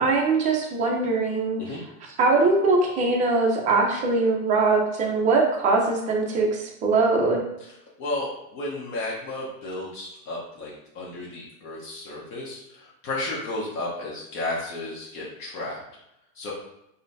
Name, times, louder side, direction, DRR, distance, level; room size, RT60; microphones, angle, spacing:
voice 1, 0.0-1.6 2.2-7.4, right 3 dB, 20° right, 0 dB, 0.5 m, -22 dB
voice 2, 7.6-15.8 16.3-16.5, left 2 dB, 45° left, -5 dB, 1.0 m, -33 dB
5.3 x 2.2 x 2.6 m, 0.85 s
supercardioid pair, 140°, 42 cm